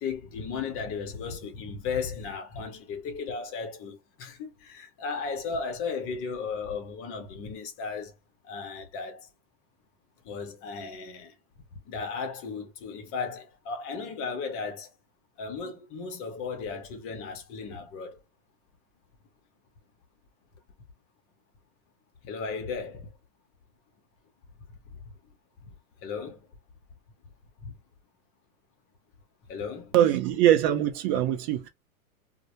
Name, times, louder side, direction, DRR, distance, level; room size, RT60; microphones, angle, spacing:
voice 1, 0.0-8.1 8.4-9.3 10.2-11.3 11.9-14.9 15.4-18.2 22.2-23.1 25.7-25.8 26.0-26.5 27.6-27.7 29.5-29.9, left 5 dB, 30° left, 0.7 m, -35 dB
voice 2, 29.9-31.7, right 12 dB, 40° right, 0.6 m, -22 dB
2.1 x 2.1 x 2.8 m
hypercardioid pair, 120°, 44 cm